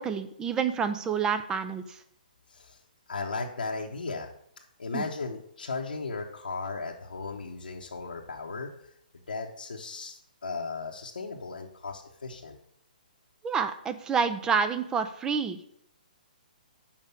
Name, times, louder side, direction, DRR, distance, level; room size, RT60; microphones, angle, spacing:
voice 1, 0.0-1.8 4.9-5.0 13.4-15.7, right 6 dB, 15° right, 9 dB, 0.6 m, -28 dB
voice 2, 2.5-2.8 3.1-4.3 4.8-8.9 9.3-12.6, left 4 dB, 85° left, -2 dB, 1.0 m, -36 dB
7.2 x 5.1 x 6.7 m, 0.71 s
hypercardioid pair, 140°, 5 cm